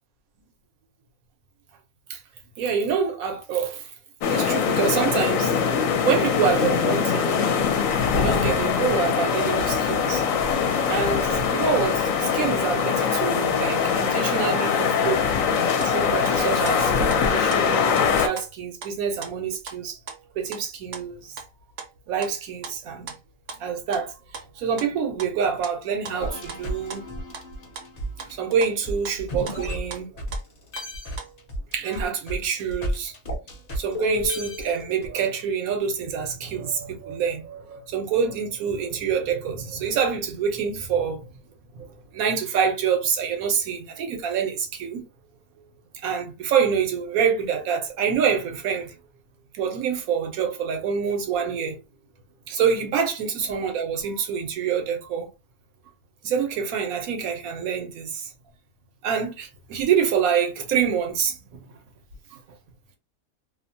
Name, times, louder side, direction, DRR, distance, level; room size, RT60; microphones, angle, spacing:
voice 1, 2.6-3.9 4.3-5.6 6.0-7.3 8.2-10.2 10.9-15.2 15.8-20.0 20.4-21.4 22.1-23.1 23.6-24.1 24.6-27.0 28.3-30.1 31.7-33.1 33.8-41.2 41.7-45.0 46.0-48.9 49.5-51.8 52.5-55.3 56.2-58.3 59.0-61.4, right 7 dB, 80° right, 1.1 m, -26 dB
sound 1, 4.2-18.3, left 6 dB, 75° left, 0.9 m, -22 dB
sound 2, 15.8-15.9 16.2-16.4 16.7-17.2 17.5-18.1 18.4-19.8 20.1-22.3 22.6-23.2 23.5-23.6 23.9-24.0 24.3-24.9 25.2-25.8 26.0-26.6 26.9-27.1 27.3-27.5 27.7-28.4 28.6-30.9 31.1-31.5, right 5 dB, 65° right, 0.9 m, -39 dB
sound 3, 26.2-30.4 30.7-35.1, left 1 dB, 40° left, 0.6 m, -33 dB
2.7 x 2.1 x 2.7 m
omnidirectional pair, 1.5 m